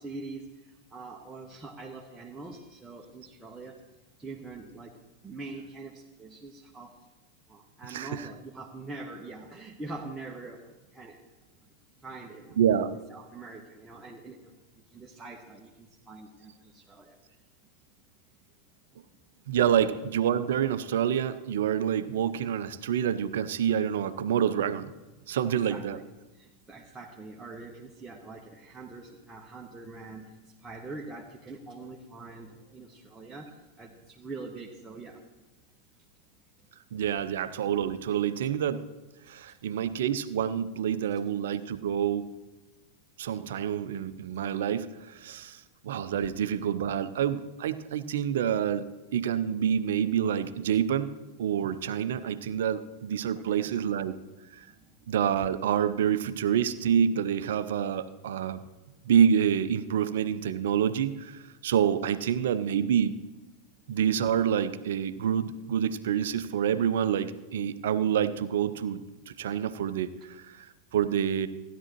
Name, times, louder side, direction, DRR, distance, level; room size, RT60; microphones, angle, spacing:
voice 1, 0.0-3.8 4.2-7.0 7.5-11.2 12.0-12.6 13.1-17.2 25.7-26.0 26.3-30.4 30.6-35.2 39.5-39.6 53.3-53.7 54.7-55.0, right 3 dB, 10° right, -2 dB, 1.1 m, -44 dB
voice 2, 7.9-8.3 12.6-12.9 19.5-24.9 25.3-26.0 36.9-38.8 39.3-42.3 43.2-51.1 51.4-54.2 55.1-58.6 59.0-63.2 63.9-69.0 69.3-70.7 70.9-71.5, right 9 dB, 60° right, 13 dB, 0.6 m, -27 dB
16.0 x 11.0 x 3.0 m, 1.2 s
figure-of-eight pair, 90°, 0 cm